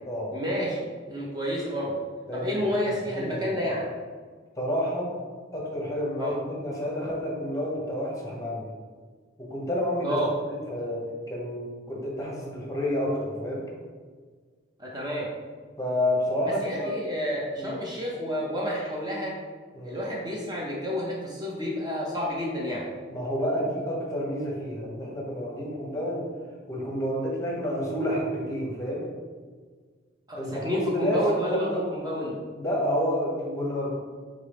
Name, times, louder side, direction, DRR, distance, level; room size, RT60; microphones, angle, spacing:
voice 1, 0.3-2.0 2.3-3.9 6.2-6.4 10.0-10.3 14.8-15.3 16.5-19.4 19.8-22.9 30.3-32.4, equal, 20° right, -4 dB, 0.6 m, -30 dB
voice 2, 2.3-2.6 3.1-3.5 4.6-5.1 5.5-8.7 9.4-11.0 11.3-13.6 15.8-16.9 17.6-17.7 19.7-20.0 23.1-26.2 26.7-29.0 30.4-31.8 32.6-33.9, equal, 20° left, -3 dB, 0.9 m, -29 dB
3.8 x 3.8 x 3.4 m, 1.6 s
head